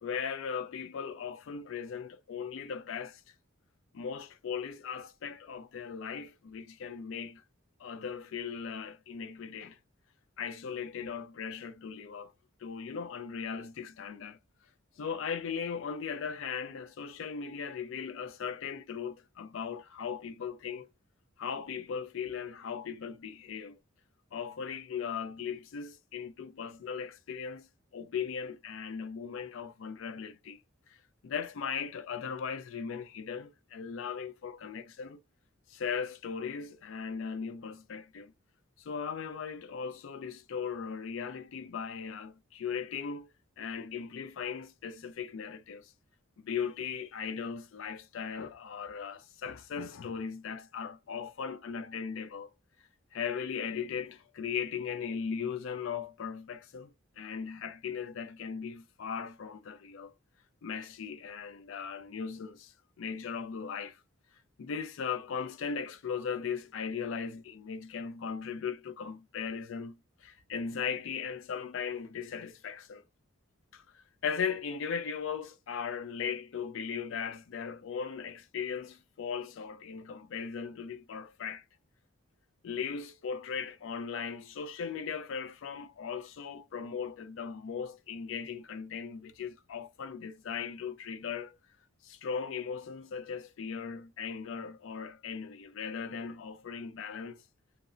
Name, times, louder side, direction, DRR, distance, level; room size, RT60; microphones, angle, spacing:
voice 1, 0.0-3.2 3.9-7.4 7.8-9.8 10.4-12.3 12.6-14.4 15.0-20.9 21.4-23.8 24.3-27.7 27.9-30.6 31.2-35.2 35.7-38.3 38.8-43.3 43.6-45.9 46.4-52.5 53.1-60.1 60.6-64.0 64.6-73.0 73.7-81.6 82.6-91.6 92.0-97.4, left 6 dB, 60° left, 0.3 m, -38 dB
2.6 x 2.0 x 2.4 m
head